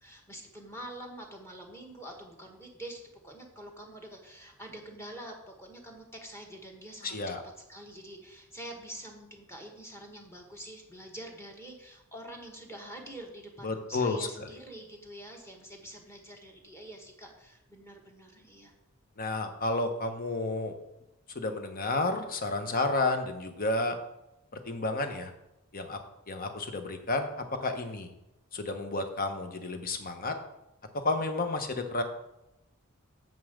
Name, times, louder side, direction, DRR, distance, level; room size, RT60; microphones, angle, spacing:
voice 1, 0.0-7.2 7.7-18.7, right 1 dB, 10° left, 2 dB, 1.5 m, -46 dB
voice 2, 7.0-7.4 13.6-14.5 19.2-20.8 21.3-24.0 24.5-25.3 25.7-26.0 26.3-28.1 28.5-30.3 30.9-32.0, left 2 dB, 40° left, 7 dB, 1.0 m, -31 dB
7.6 x 5.5 x 6.4 m, 0.89 s
head